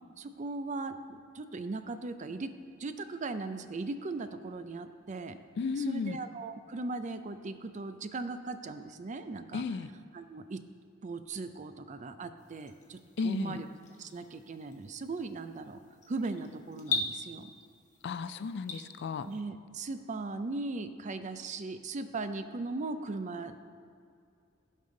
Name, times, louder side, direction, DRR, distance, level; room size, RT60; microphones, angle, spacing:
voice 1, 0.2-2.5 2.8-5.4 5.8-9.6 10.1-10.6 11.0-13.7 14.0-15.8 16.1-17.5 19.3-23.7, right 3 dB, 40° right, 10 dB, 0.4 m, -38 dB
voice 2, 5.6-6.2 9.5-9.9 13.2-13.6 18.0-19.3, left 4 dB, 60° left, 13 dB, 0.3 m, -34 dB
sound 1, 12.4-19.4, left 4 dB, 35° left, 0.9 m, -41 dB
16.0 x 5.4 x 3.8 m, 2.3 s
head